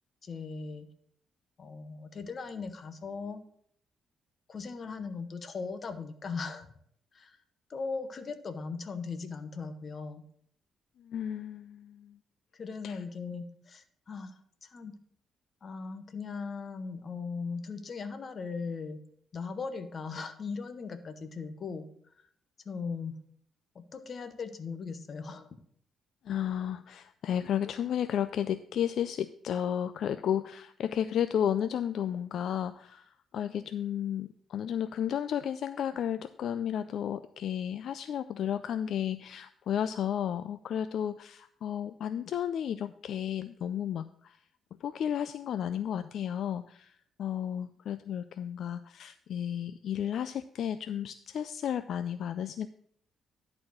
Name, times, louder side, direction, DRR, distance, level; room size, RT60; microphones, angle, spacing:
voice 1, 0.2-0.9 1.6-3.4 4.5-6.7 7.1-7.4 7.7-10.2 12.5-14.3 14.6-15.0 15.6-19.0 19.3-21.9 22.6-23.2 23.7-25.5, left 4 dB, 40° left, 9 dB, 0.9 m, -38 dB
voice 2, 11.0-12.2 12.8-13.0 26.2-44.4 44.8-52.7, left 9 dB, 65° left, 11 dB, 0.3 m, -33 dB
11.0 x 4.2 x 6.2 m, 0.64 s
cardioid pair, 130°, 0 cm